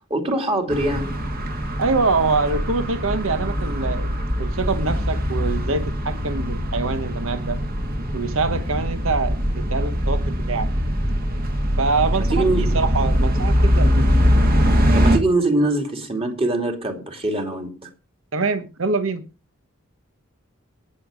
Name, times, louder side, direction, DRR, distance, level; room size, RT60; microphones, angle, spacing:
voice 1, 0.1-1.2 12.3-12.8 14.9-17.9, right 2 dB, 25° right, 2.3 m, -23 dB
sound 1, 0.7-15.2, equal, 45° right, 2.0 m, -22 dB
voice 2, 1.8-4.1 4.4-7.6 8.1-10.7 11.8-14.1 18.3-19.3, right 4 dB, 75° right, 1.1 m, -24 dB
18.5 x 6.7 x 5.0 m
head